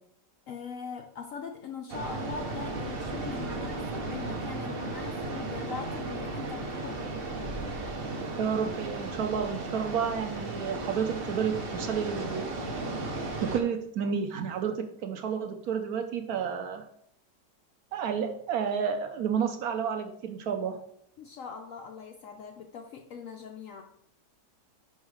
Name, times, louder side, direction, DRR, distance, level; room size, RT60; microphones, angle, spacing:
voice 1, 0.5-7.2 21.2-23.8, left 6 dB, 70° left, 4 dB, 0.8 m, -41 dB
sound 1, 1.9-13.6, right 2 dB, 45° right, 0.8 m, -35 dB
voice 2, 8.4-12.5 13.4-16.9 17.9-20.8, right 7 dB, 70° right, 6 dB, 1.0 m, -31 dB
5.5 x 4.7 x 4.8 m, 0.71 s
omnidirectional pair, 1.9 m